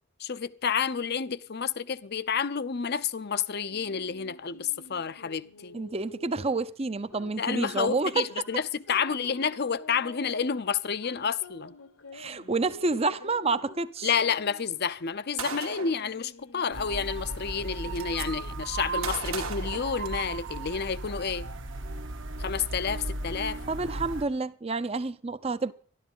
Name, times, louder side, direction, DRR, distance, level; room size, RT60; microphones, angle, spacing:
voice 1, 0.2-5.8 7.4-11.7 14.0-21.5 22.4-23.6, left 6 dB, 50° left, 0.6 m, -30 dB
sound 1, 3.7-18.5, left 3 dB, 75° left, 1.5 m, -49 dB
voice 2, 5.7-8.3 12.1-14.1 23.7-25.7, right 3 dB, 30° right, 0.6 m, -29 dB
Gunshot gunfire, 15.4-16.0 17.2-17.3 17.6-18.3 19.0-20.5, right 7 dB, 85° right, 1.7 m, -37 dB
sound 2, 16.7-24.2, right 2 dB, 60° right, 1.2 m, -36 dB
13.5 x 12.0 x 5.5 m
head